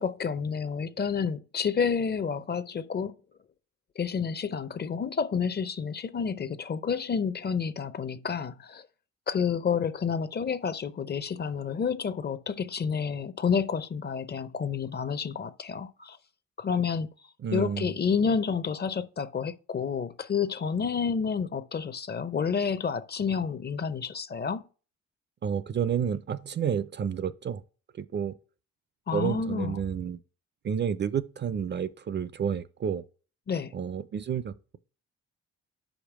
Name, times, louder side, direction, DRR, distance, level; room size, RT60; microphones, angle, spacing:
voice 1, 0.0-3.1 4.0-8.9 9.3-16.2 16.6-17.1 17.5-24.7 29.1-29.8 33.5-33.7, left 6 dB, 35° left, 0.6 m, -29 dB
voice 2, 17.4-17.9 25.4-27.6 28.0-28.4 29.1-30.2 30.6-33.0 33.7-34.8, right 7 dB, 35° right, 0.5 m, -30 dB
5.2 x 4.8 x 5.9 m
cardioid pair, 90°, 30 cm